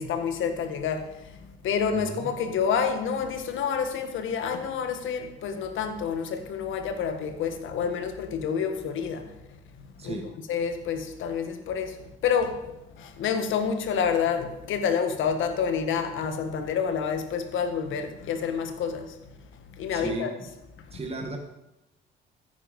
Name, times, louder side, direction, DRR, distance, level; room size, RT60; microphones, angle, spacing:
voice 1, 0.0-9.4 9.7-10.2 10.5-19.3 19.7-20.3 20.8-20.9, left 6 dB, 80° left, 1.7 m, -28 dB
voice 2, 1.9-2.3 10.0-10.3 19.9-20.5 20.9-21.4, right 3 dB, 30° right, 1.8 m, -34 dB
14.5 x 9.8 x 5.3 m
cardioid pair, 90°, 20 cm